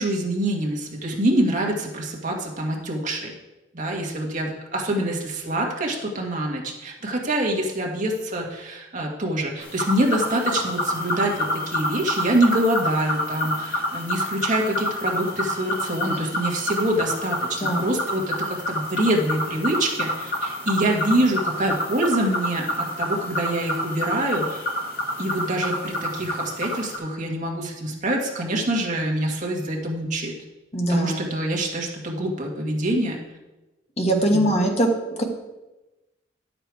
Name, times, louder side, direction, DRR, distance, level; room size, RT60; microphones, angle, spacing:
voice 1, 0.0-3.3 3.7-24.7 25.2-30.3 30.9-33.2 34.1-34.5, right 1 dB, 45° right, 0 dB, 1.6 m, -25 dB
sound 1, 9.6-27.0, left 1 dB, 55° left, 2.0 m, -28 dB
voice 2, 30.7-31.3 34.0-34.9 35.2-35.3, right 1 dB, 35° left, 2 dB, 1.4 m, -21 dB
11.0 x 6.8 x 4.7 m, 1.0 s
head